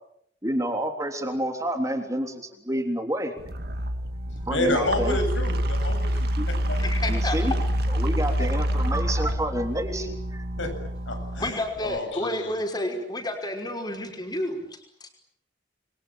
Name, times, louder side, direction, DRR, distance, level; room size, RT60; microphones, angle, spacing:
voice 1, 0.4-3.3 4.5-5.2 6.4-6.5 7.1-7.5 7.9-10.4, right 1 dB, 15° right, 4 dB, 3.5 m, -29 dB
sound 1, 3.4-12.0, equal, 55° right, 2.1 m, -27 dB
voice 2, 4.5-6.3 6.7-7.3 8.4-8.5 10.6-10.7 11.1-12.5, left 2 dB, 90° left, 6 dB, 8.0 m, -30 dB
voice 3, 6.8-7.7 11.4-15.1, left 1 dB, 20° left, 4 dB, 5.4 m, -31 dB
29.0 x 23.0 x 8.9 m, 0.73 s
head